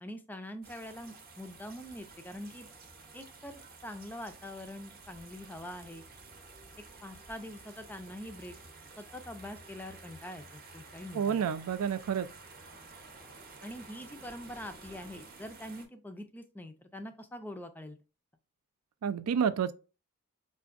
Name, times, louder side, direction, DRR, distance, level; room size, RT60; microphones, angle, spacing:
voice 1, 0.0-2.7 3.1-6.1 7.0-8.6 9.0-11.4 13.6-18.0, left 1 dB, 10° left, 0.3 m, -44 dB
sound 1, 0.6-15.8, right 3 dB, 40° right, 0.7 m, -52 dB
voice 2, 11.1-12.3 19.0-19.7, right 7 dB, 90° right, 0.4 m, -29 dB
4.8 x 2.5 x 2.4 m
head